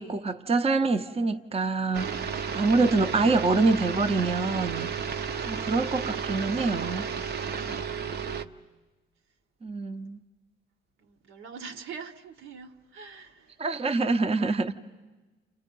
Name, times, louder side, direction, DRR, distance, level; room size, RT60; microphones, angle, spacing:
voice 1, 0.0-4.9 5.5-7.1 9.6-10.2 13.6-14.7, right 3 dB, 30° right, 0.8 m, -26 dB
sound 1, 1.9-8.4, right 6 dB, 55° right, 0.8 m, -32 dB
voice 2, 7.6-8.6 10.0-10.1 11.0-14.2, right 5 dB, 80° right, 1.3 m, -45 dB
30.0 x 28.5 x 5.4 m
cardioid pair, 90°, 20 cm